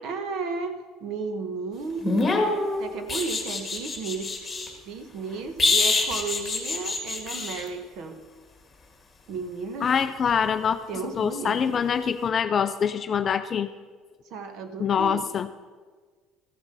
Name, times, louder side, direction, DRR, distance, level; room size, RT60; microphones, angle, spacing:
voice 1, 0.0-2.4 2.8-4.3 4.9-8.2 9.3-9.9 10.9-11.8 14.3-15.2, right 4 dB, 55° right, 7 dB, 1.2 m, -34 dB
sound 1, 2.0-4.7 5.6-7.6 10.3-10.4, left 3 dB, 15° left, 1.7 m, -25 dB
voice 2, 9.8-10.8 11.2-13.7 14.8-15.5, left 7 dB, 30° left, 10 dB, 0.4 m, -24 dB
14.5 x 7.2 x 6.8 m, 1.5 s
cardioid pair, 165°, 0 cm